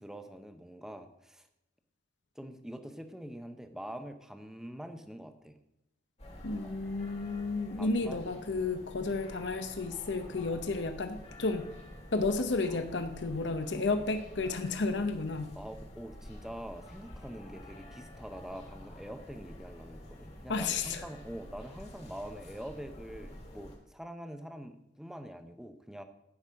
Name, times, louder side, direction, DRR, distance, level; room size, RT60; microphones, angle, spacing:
voice 1, 0.0-1.5 2.4-5.6 6.6-6.7 7.8-8.2 12.7-12.8 15.0-15.1 15.6-26.0, equal, 5° right, 8 dB, 0.6 m, -45 dB
sound 1, 6.2-23.8, left 1 dB, 35° left, 1.7 m, -49 dB
voice 2, 6.4-11.7 12.1-15.5 20.5-21.0, left 3 dB, 65° left, 8 dB, 0.7 m, -32 dB
9.9 x 5.4 x 6.3 m, 0.84 s
head